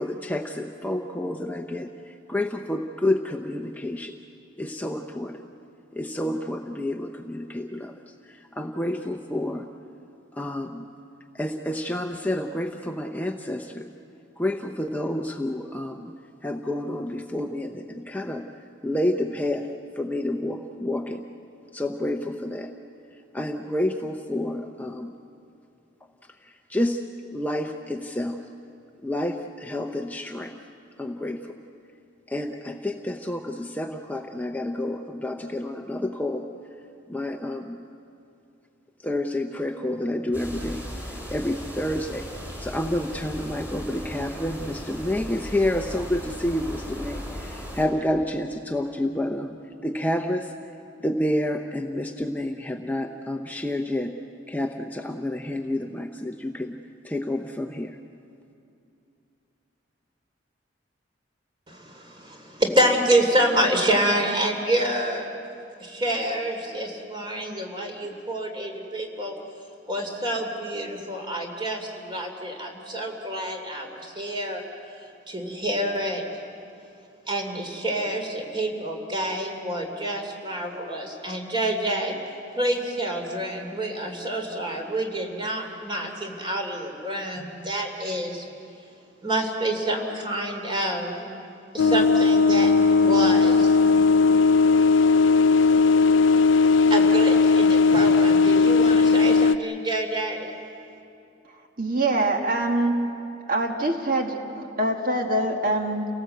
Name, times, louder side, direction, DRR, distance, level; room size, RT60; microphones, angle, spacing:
voice 1, 0.0-4.2 4.6-5.4 5.9-9.7 10.3-10.9 11.3-13.9 14.4-16.1 16.4-18.5 18.8-19.7 20.0-21.2 21.7-22.7 23.3-25.2 26.4-27.0 27.3-28.4 29.0-30.6 31.0-31.6 32.3-36.5 37.1-37.8 39.0-42.3 42.6-50.5 51.0-54.1 54.5-56.8 57.0-58.0, left 1 dB, 10° left, 3 dB, 0.7 m, -29 dB
sound 1, 40.3-47.8, equal, 10° right, 4.5 m, -37 dB
voice 2, 61.7-65.3 65.8-69.3 69.9-74.6 75.3-76.3 77.3-82.2 82.6-88.5 89.2-91.3 91.7-92.7 93.0-93.8 96.9-100.5, right 1 dB, 25° right, 3 dB, 2.9 m, -27 dB
sound 2, 91.8-99.6, left 4 dB, 75° left, 0.5 m, -18 dB
voice 3, 101.8-102.9 103.5-106.1, right 2 dB, 45° right, 2 dB, 1.6 m, -24 dB
29.0 x 18.0 x 7.9 m, 2.6 s
head